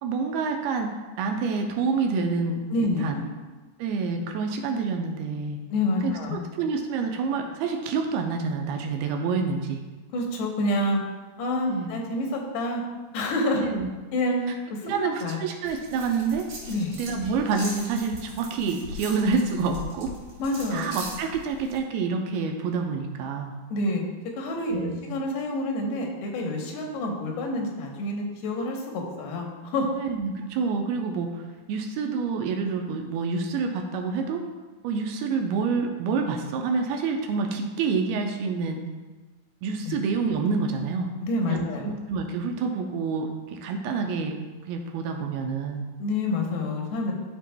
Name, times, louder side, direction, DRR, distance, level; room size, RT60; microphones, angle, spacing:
voice 1, 0.0-2.6 3.0-3.2 3.8-5.6 6.0-9.8 11.7-11.9 13.6-13.9 14.8-16.5 17.0-20.1 20.7-23.5 24.7-25.0 30.0-31.4 31.7-34.4 34.8-38.8 39.6-41.1 41.5-44.4 44.7-45.9, right 4 dB, 80° right, 3 dB, 2.4 m, -27 dB
voice 2, 2.7-3.3 5.7-6.5 10.1-11.0 11.4-12.8 13.1-13.6 14.1-14.4 14.7-15.4 16.7-16.9 20.4-20.8 23.7-24.0 24.4-29.9 39.9-40.0 41.2-41.9 46.0-47.1, left 1 dB, 85° left, 1 dB, 3.0 m, -28 dB
sound 1, 15.6-21.8, equal, 55° right, 3.7 m, -41 dB
13.0 x 4.8 x 2.2 m, 1.3 s
omnidirectional pair, 4.6 m